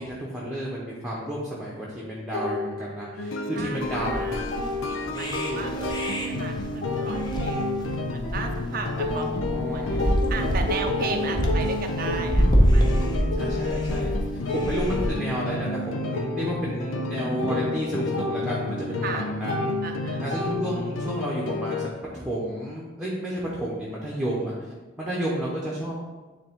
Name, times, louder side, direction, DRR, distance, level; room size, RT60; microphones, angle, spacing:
voice 1, 0.0-4.3 5.0-5.8 8.7-10.0 13.4-19.7 20.2-25.9, right 1 dB, 5° right, -5 dB, 1.0 m, -32 dB
sound 1, 2.3-3.4 3.7-5.3 5.6-9.7 10.0-21.1, left 1 dB, 40° left, 1.4 m, -33 dB
sound 2, 3.2-21.9, left 3 dB, 90° left, 0.6 m, -31 dB
voice 2, 3.5-4.5 4.9-13.4 19.0-19.2 19.8-20.2, right 4 dB, 45° right, 4 dB, 0.5 m, -36 dB
sound 3, 3.8-15.1, equal, 20° left, 0.8 m, -26 dB
9.5 x 3.5 x 3.7 m, 1.3 s
head